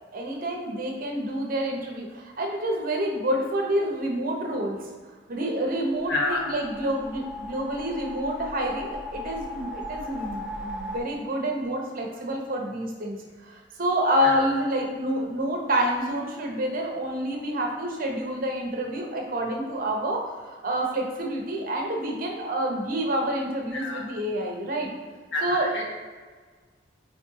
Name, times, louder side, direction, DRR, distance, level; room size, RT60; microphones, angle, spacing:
voice 1, 0.1-4.8 5.3-24.9 25.4-25.7, right 1 dB, 50° right, 1 dB, 1.0 m, -28 dB
sound 1, 5.9-11.0, left 1 dB, 5° right, 0.6 m, -38 dB
voice 2, 6.1-6.4 14.2-14.4 23.7-24.0 25.3-26.0, left 2 dB, 65° left, -1 dB, 1.2 m, -29 dB
4.6 x 4.3 x 4.7 m, 1.5 s
head